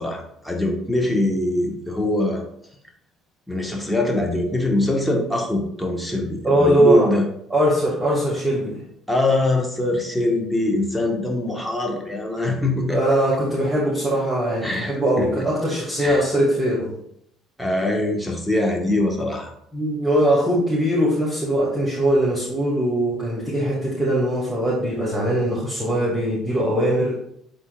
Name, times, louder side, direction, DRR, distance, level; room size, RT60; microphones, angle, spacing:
voice 1, 0.0-2.4 3.5-7.3 9.1-13.0 14.6-15.4 16.0-16.2 17.6-19.5, left 2 dB, ahead, -1 dB, 1.6 m, -23 dB
voice 2, 6.4-7.1 7.5-8.8 12.9-16.9 19.7-27.1, right 1 dB, 15° right, -8 dB, 2.6 m, -21 dB
10.0 x 3.8 x 2.5 m, 0.72 s
hypercardioid pair, 60°, 0 cm